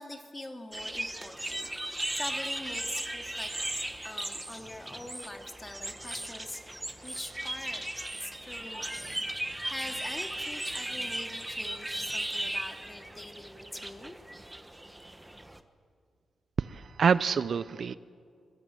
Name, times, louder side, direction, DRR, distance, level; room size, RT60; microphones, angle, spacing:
voice 1, 0.0-7.9 8.2-9.2 9.6-14.2, left 1 dB, 15° left, 4 dB, 2.4 m, -44 dB
sound 1, 0.7-15.6, right 1 dB, 10° right, 1.2 m, -37 dB
voice 2, 16.6-17.9, right 6 dB, 55° right, 15 dB, 0.6 m, -26 dB
25.0 x 21.5 x 9.1 m, 2.2 s
wide cardioid pair, 125°, 0 cm